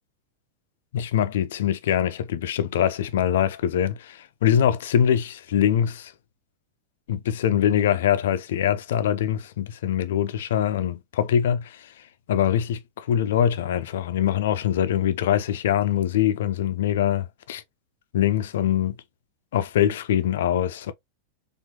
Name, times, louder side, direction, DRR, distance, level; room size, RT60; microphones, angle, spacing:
voice 1, 0.9-6.1 7.1-11.9 12.3-17.6 18.1-19.0 19.5-20.9, left 10 dB, 60° left, 0.5 m, -23 dB
4.4 x 2.6 x 2.8 m
figure-of-eight pair, 90°, 0 cm